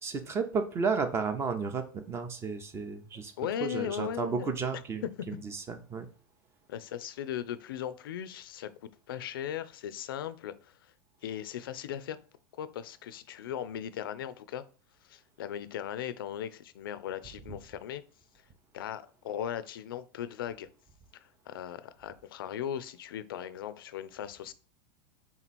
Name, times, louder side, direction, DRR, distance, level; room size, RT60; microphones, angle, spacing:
voice 1, 0.0-3.3 3.6-6.1, right 5 dB, 20° right, 0.6 m, -33 dB
voice 2, 3.4-4.5 5.2-5.3 6.7-8.7 9.1-10.9 11.2-12.2 12.6-14.6 15.0-18.0 18.7-20.7 21.1-24.5, left 10 dB, 85° left, 0.4 m, -38 dB
3.7 x 3.0 x 4.1 m
supercardioid pair, 130°, 11 cm